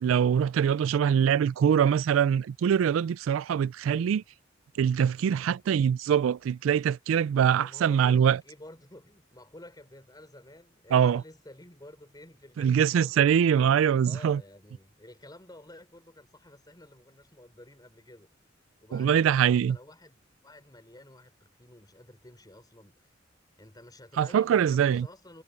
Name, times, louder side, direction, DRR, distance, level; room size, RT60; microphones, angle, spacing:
voice 1, 0.0-4.2 4.8-8.4 10.9-11.2 12.6-14.4 18.9-19.8 24.2-25.1, right 8 dB, 85° right, 0.3 m, -23 dB
voice 2, 3.9-4.3 7.3-13.6 14.0-18.3 18.8-23.1 23.6-25.4, left 1 dB, 20° left, 5.0 m, -51 dB
head